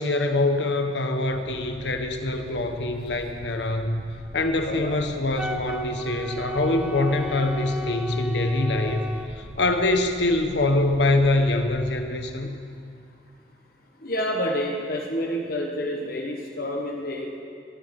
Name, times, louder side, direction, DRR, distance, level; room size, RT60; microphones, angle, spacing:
voice 1, 0.0-4.0 4.3-9.0 9.4-12.5, left 2 dB, 85° left, 6 dB, 1.2 m, -24 dB
sound 1, 1.3-12.0, equal, 80° right, 5.4 m, -44 dB
voice 2, 4.6-5.0 14.0-17.3, equal, 60° left, 1 dB, 1.4 m, -28 dB
Wind instrument woodwind instrument, 5.4-9.3, left 2 dB, 5° right, 0.6 m, -34 dB
22.0 x 11.0 x 5.4 m, 2.3 s
head